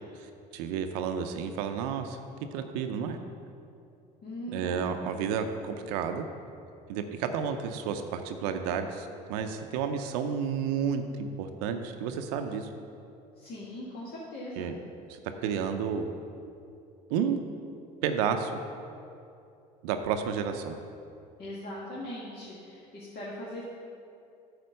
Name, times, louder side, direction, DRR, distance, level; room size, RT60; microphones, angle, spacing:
voice 1, 0.2-2.2 2.5-3.2 4.5-6.2 6.9-12.7 14.6-14.7 15.1-16.1 17.1-17.4 18.0-18.6 19.8-20.7, right 7 dB, 75° right, 7 dB, 0.6 m, -31 dB
voice 2, 4.2-5.1 13.4-14.8 21.4-23.6, left 1 dB, 50° left, -7 dB, 1.8 m, -40 dB
9.4 x 4.3 x 6.5 m, 2.6 s
hypercardioid pair, 65°, 21 cm